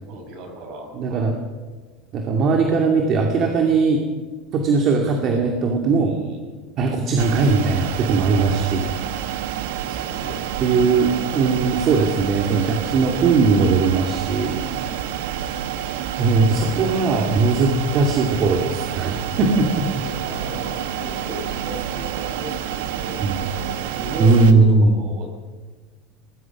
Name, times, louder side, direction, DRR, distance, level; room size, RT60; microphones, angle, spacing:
voice 1, 0.1-1.4 5.9-6.6 8.3-8.6 9.8-10.5 12.7-13.0 14.7-15.3 19.2-25.3, equal, 50° right, 2 dB, 7.1 m, -36 dB
voice 2, 0.9-1.3 2.1-4.0 4.5-6.1 6.8-8.8 10.6-14.9 16.2-19.7 23.2-23.4 24.2-24.9, right 4 dB, 35° right, 2 dB, 2.4 m, -19 dB
sound 1, 7.2-24.5, right 10 dB, 90° right, 1.6 m, -28 dB
23.5 x 20.5 x 6.0 m, 1.3 s
cardioid pair, 160°, 0 cm